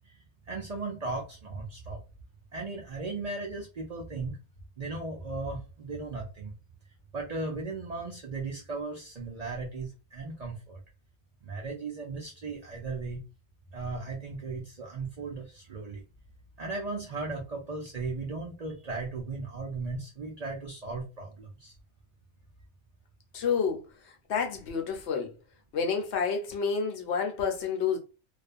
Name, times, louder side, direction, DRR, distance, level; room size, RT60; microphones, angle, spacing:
voice 1, 0.5-2.0 2.5-4.4 4.8-6.5 7.1-10.8 11.4-13.2 13.7-16.0 16.6-21.7, right 3 dB, 45° right, 0.5 m, -36 dB
voice 2, 23.3-23.8 24.3-25.3 25.7-28.0, left 6 dB, 75° left, 0.9 m, -29 dB
2.4 x 2.2 x 2.4 m
omnidirectional pair, 1.2 m